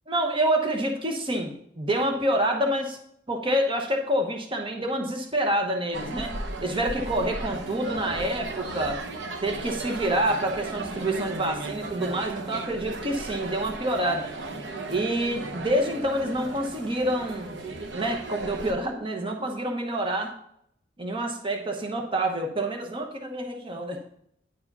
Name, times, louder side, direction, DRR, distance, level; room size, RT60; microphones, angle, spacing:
voice 1, 0.1-3.0 3.3-9.0 9.4-14.3 14.9-17.5 17.9-20.3 21.0-24.0, right 1 dB, 30° right, 2 dB, 1.0 m, -27 dB
sound 1, 5.9-18.7, right 2 dB, 70° right, 0.9 m, -36 dB
10.0 x 4.8 x 5.4 m, 0.69 s
head